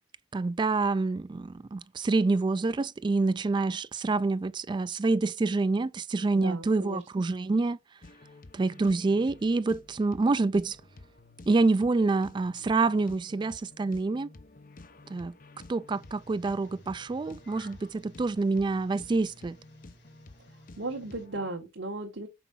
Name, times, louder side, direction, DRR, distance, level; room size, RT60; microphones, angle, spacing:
voice 1, 0.3-7.8 8.5-10.8 11.5-14.3 15.1-15.3 15.7-19.6, right 3 dB, 25° right, 0.3 m, -27 dB
voice 2, 6.3-7.0 20.8-22.3, right 2 dB, 85° right, 1.4 m, -36 dB
sound 1, 8.0-21.5, left 2 dB, 50° left, 0.8 m, -52 dB
sound 2, 15.9-21.3, left 1 dB, 65° left, 4.0 m, -57 dB
6.0 x 4.6 x 5.4 m
head